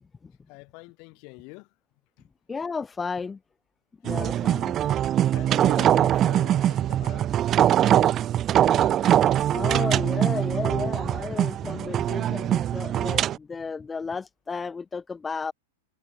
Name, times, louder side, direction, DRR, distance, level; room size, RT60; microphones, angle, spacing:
voice 1, 0.5-1.7 2.2-2.3 4.4-4.9 5.3-7.3, left 31 dB, 45° left, 6.9 m, -45 dB
voice 2, 2.5-3.4 4.0-4.7 9.0-9.1 9.5-15.5, left 5 dB, 15° left, 1.8 m, -33 dB
sound 1, 4.0-13.4, right 11 dB, 30° right, 0.8 m, -22 dB
hypercardioid pair, 125°, 0 cm